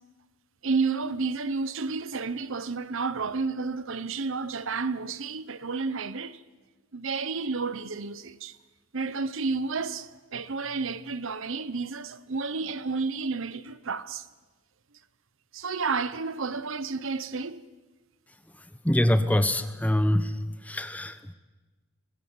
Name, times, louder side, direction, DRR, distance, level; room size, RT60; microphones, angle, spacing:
voice 1, 0.6-6.4 6.9-8.6 8.9-14.3 15.5-17.6, right 4 dB, 60° right, 0.9 m, -31 dB
voice 2, 18.5-21.3, left 1 dB, 5° left, 0.9 m, -25 dB
22.5 x 22.0 x 7.4 m
head